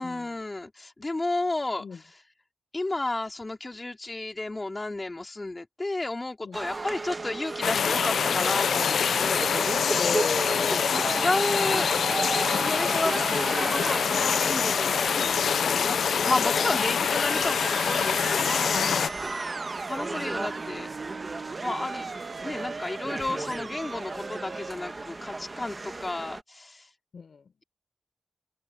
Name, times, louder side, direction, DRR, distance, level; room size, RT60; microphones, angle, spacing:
voice 1, 0.0-2.0 2.7-9.5 10.9-11.9 12.6-15.0 15.7-18.9 19.9-20.9 21.6-22.1 22.4-26.9, left 2 dB, 25° left, 3.4 m, -32 dB
sound 1, 6.5-26.4, right 2 dB, 25° right, 1.2 m, -36 dB
Musical instrument, 6.7-24.7, right 4 dB, 50° right, 1.1 m, -39 dB
sound 2, 7.6-19.1, left 7 dB, 85° left, 0.4 m, -25 dB
voice 2, 10.0-11.0 11.5-11.7 18.8-19.2 27.1-27.5, left 5 dB, 55° left, 5.4 m, -35 dB
open air
wide cardioid pair, 120°, 0 cm